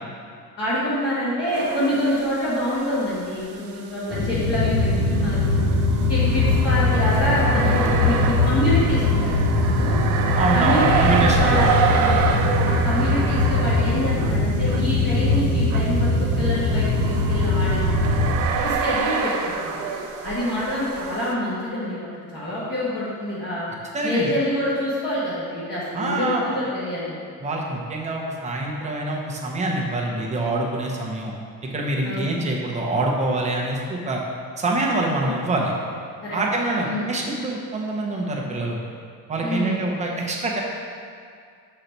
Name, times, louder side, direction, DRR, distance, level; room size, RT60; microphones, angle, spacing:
voice 1, 0.6-5.6 6.1-10.0 10.5-12.2 12.6-18.2 18.6-19.8 20.2-23.7 24.0-27.2 32.0-32.3 35.2-35.3 36.2-36.4 36.8-37.1 39.4-39.8, left 1 dB, 30° left, -11 dB, 1.3 m, -26 dB
sound 1, 1.5-2.7 2.9-3.0 4.1-21.3, right 6 dB, 65° right, 0.6 m, -28 dB
sound 2, 4.1-18.3, left 2 dB, 55° left, 1.0 m, -21 dB
voice 2, 10.4-11.7 23.9-24.3 25.9-26.4 27.4-31.3 31.7-34.2 34.6-35.7 36.3-38.8 39.3-40.6, right 2 dB, 20° right, -1 dB, 0.7 m, -25 dB
6.6 x 4.0 x 4.4 m, 2.2 s
cardioid pair, 155°, 34 cm